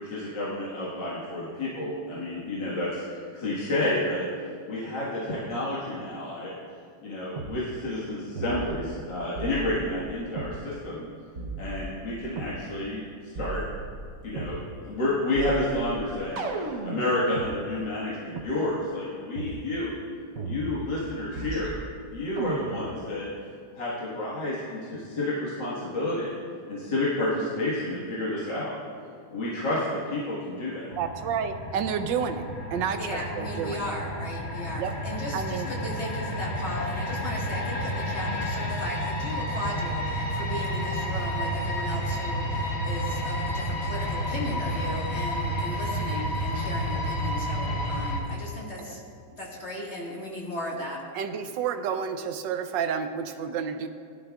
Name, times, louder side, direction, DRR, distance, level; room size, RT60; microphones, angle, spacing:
voice 1, 0.0-4.2 4.7-6.5 7.0-11.1 11.6-13.6 14.2-19.9 20.4-21.8 22.1-23.3 23.7-26.3 26.7-28.7 29.3-30.9, left 1 dB, 65° left, -8 dB, 2.3 m, -30 dB
sound 1, 7.4-7.5 8.4-9.0 9.4-10.6 11.4-12.6 13.3-14.6 15.4-17.5 18.4-18.5 19.4-19.6 20.4-21.1 21.4-22.0 22.4-23.0, right 3 dB, 55° right, 1.1 m, -36 dB
sound 2, 30.9-48.2, equal, 85° left, 2.2 m, -30 dB
voice 2, 31.0-32.4 32.7-33.8 34.8-34.9 35.3-35.7 51.1-53.9, right 7 dB, 75° right, 8 dB, 1.3 m, -30 dB
voice 3, 33.0-49.0 49.3-51.0, left 1 dB, 35° left, -4 dB, 1.9 m, -36 dB
17.0 x 11.5 x 2.4 m, 2.4 s
omnidirectional pair, 2.2 m